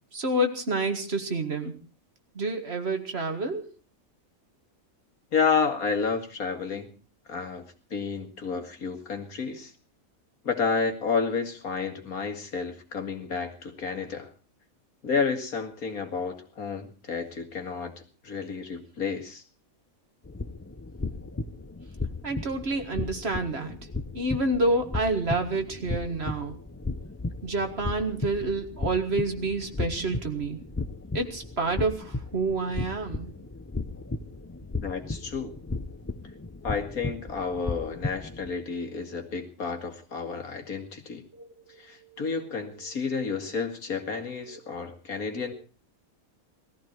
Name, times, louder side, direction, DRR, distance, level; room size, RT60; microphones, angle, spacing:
voice 1, 0.1-1.8 2.4-3.7 22.2-23.8 24.1-26.6 27.4-30.6 31.1-33.3 41.3-42.8 43.4-43.6 44.5-44.6 45.1-45.5, right 2 dB, 45° right, 6 dB, 2.1 m, -29 dB
voice 2, 5.3-6.9 7.3-7.7 7.9-9.7 10.4-14.3 15.0-17.9 18.2-19.4 34.8-35.5 36.6-41.3 41.8-45.5, left 5 dB, 85° left, 6 dB, 2.6 m, -30 dB
sound 1, 20.2-38.5, left 3 dB, 20° left, 0.4 m, -35 dB
19.5 x 14.0 x 4.6 m, 0.35 s
omnidirectional pair, 1.5 m